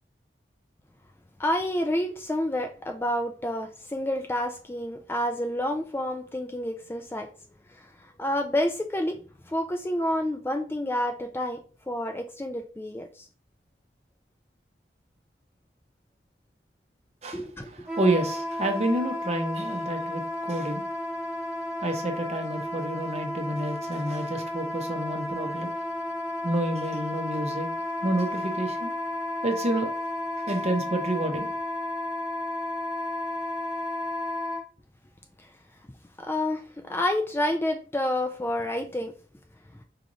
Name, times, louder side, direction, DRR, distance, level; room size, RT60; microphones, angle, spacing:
voice 1, 1.4-7.3 7.7-9.2 9.5-11.6 11.9-13.3 17.3-17.7 36.2-39.1, left 1 dB, 15° left, 0.3 m, -29 dB
voice 2, 17.2-20.8 21.8-25.8 26.4-27.7 28.0-28.9 29.4-29.9 30.5-31.5, right 1 dB, 35° right, 0.6 m, -29 dB
Wind instrument woodwind instrument, 17.9-34.6, left 1 dB, 5° right, 1.1 m, -32 dB
4.8 x 3.0 x 2.5 m
head